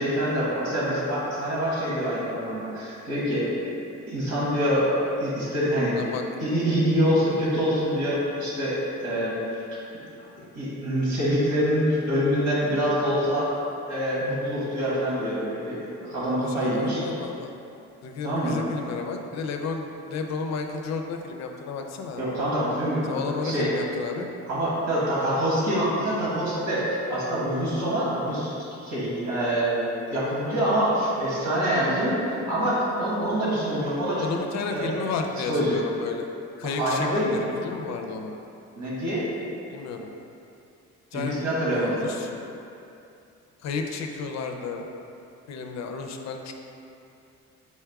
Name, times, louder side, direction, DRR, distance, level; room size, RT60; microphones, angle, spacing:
voice 1, 0.0-3.5 4.1-4.9 5.2-6.0 6.4-9.3 10.5-13.5 13.9-15.8 16.0-17.0 18.2-18.6 22.2-23.7 24.5-28.6 28.8-34.3 34.7-34.9 35.5-35.8 36.6-37.3 38.8-39.2 41.1-42.0, equal, 75° right, -7 dB, 1.5 m, -25 dB
voice 2, 16.4-17.5 18.0-22.3 23.0-24.3 34.2-36.3 36.6-37.1 37.3-38.3 39.7-40.1 41.1-41.5 41.7-42.4 43.6-44.9 45.5-46.5, left 4 dB, 60° left, 4 dB, 0.5 m, -32 dB
4.2 x 2.3 x 4.6 m, 2.7 s
cardioid pair, 90°, 30 cm